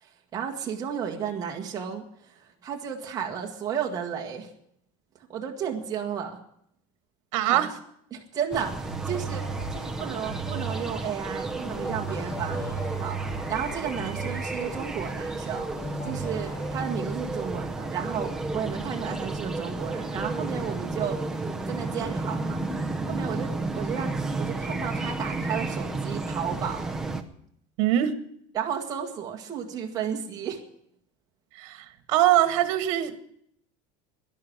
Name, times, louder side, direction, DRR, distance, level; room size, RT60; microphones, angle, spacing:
voice 1, 0.0-4.5 5.3-6.4 7.5-7.7 8.1-12.7 13.0-13.2 13.5-15.7 16.0-21.2 21.7-22.6 23.1-26.9 28.5-30.6, right 8 dB, 20° right, -1 dB, 1.6 m, -33 dB
voice 2, 7.3-7.7 27.8-28.2 31.6-33.2, right 12 dB, 70° right, 11 dB, 1.5 m, -23 dB
sound 1, 8.5-27.2, right 2 dB, 5° right, 0.7 m, -32 dB
sound 2, 8.8-16.8, right 3 dB, 15° left, 2.2 m, -36 dB
12.5 x 11.0 x 8.8 m, 0.70 s
cardioid pair, 175°, 17 cm